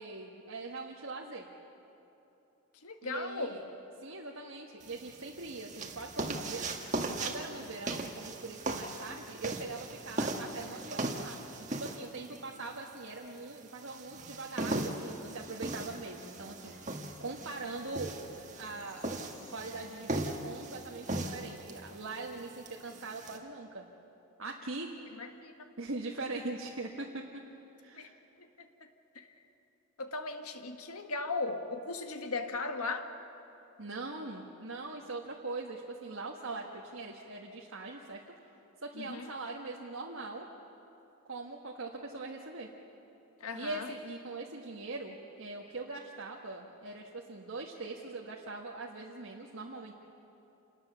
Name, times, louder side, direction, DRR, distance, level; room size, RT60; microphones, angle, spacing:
voice 1, 0.0-1.5 3.0-3.6 4.0-6.7 7.2-16.7 17.2-19.1 19.5-23.9 24.4-24.9 25.8-27.4 27.8-28.2 33.8-38.3 38.8-40.5 41.3-42.7 43.5-49.9, right 3 dB, 70° right, -1 dB, 1.5 m, -42 dB
voice 2, 2.8-3.6 25.2-25.7 27.9-28.1 28.4-28.7 29.1-29.3 30.0-33.1 38.9-39.3 43.4-43.9, left 3 dB, 90° left, 6 dB, 1.6 m, -37 dB
sound 1, 4.8-23.4, right 2 dB, 35° right, 1.6 m, -39 dB
sound 2, 16.2-21.3, left 1 dB, 60° left, 5.7 m, -58 dB
28.5 x 19.5 x 6.9 m, 2.9 s
head